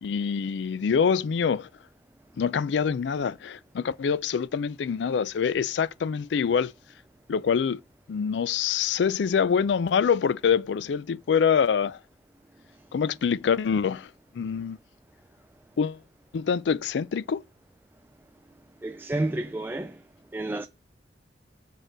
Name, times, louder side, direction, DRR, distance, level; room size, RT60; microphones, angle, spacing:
voice 1, 0.0-1.7 2.4-6.7 7.3-7.8 8.1-12.0 12.9-14.1 14.3-14.8 15.8-16.0 16.3-17.4, left 6 dB, 75° left, 0.4 m, -25 dB
voice 2, 18.8-20.0 20.3-20.7, right 2 dB, 10° right, 0.3 m, -30 dB
6.5 x 4.6 x 6.6 m
head